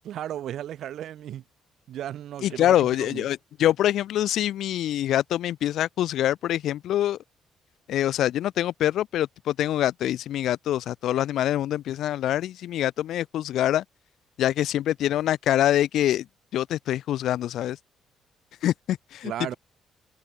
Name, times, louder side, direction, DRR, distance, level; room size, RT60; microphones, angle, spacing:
voice 1, 0.0-1.4 1.9-3.3 19.2-19.5, right 11 dB, 70° right, 0.4 m, -35 dB
voice 2, 2.4-7.2 7.9-13.8 14.4-16.3 16.5-17.8 18.6-19.5, left 12 dB, 75° left, 0.3 m, -25 dB
cardioid pair, 105°, 0 cm